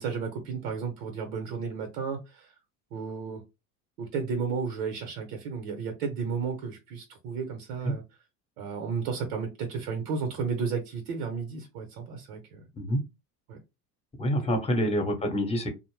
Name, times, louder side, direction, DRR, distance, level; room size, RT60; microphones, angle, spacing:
voice 1, 0.0-2.5 2.9-3.4 4.0-8.0 8.6-12.6 13.5-13.6, right 5 dB, 70° right, 0.9 m, -33 dB
voice 2, 14.2-15.7, equal, 15° left, 0.9 m, -27 dB
2.5 x 2.1 x 3.1 m
hypercardioid pair, 80°, 44 cm